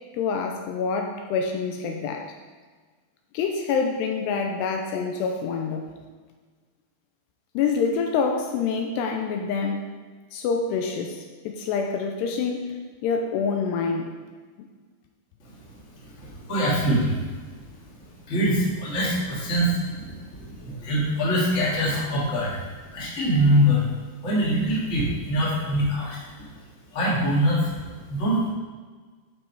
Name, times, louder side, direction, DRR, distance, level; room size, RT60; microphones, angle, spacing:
voice 1, 0.1-2.3 3.3-5.8 7.5-9.9 10.3-11.2 11.4-12.8 13.0-14.1, left 5 dB, 85° left, 3 dB, 2.7 m, -26 dB
voice 2, 16.0-17.2 18.3-23.8 24.2-26.2 26.9-27.7 28.1-28.5, equal, 25° left, -6 dB, 1.8 m, -24 dB
11.0 x 5.5 x 4.7 m, 1.4 s
omnidirectional pair, 5.0 m